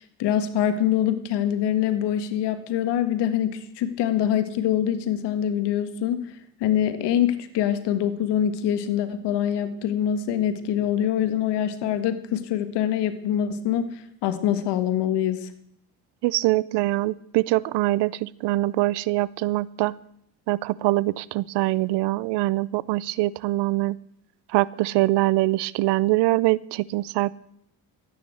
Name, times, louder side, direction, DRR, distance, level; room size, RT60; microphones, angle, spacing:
voice 1, 0.0-6.3 6.6-15.5, left 10 dB, 80° left, 10 dB, 1.7 m, -24 dB
voice 2, 16.2-19.9 20.5-24.0 24.5-27.3, right 18 dB, 85° right, 22 dB, 0.6 m, -23 dB
13.5 x 9.6 x 7.9 m, 0.71 s
cardioid pair, 85°, 40 cm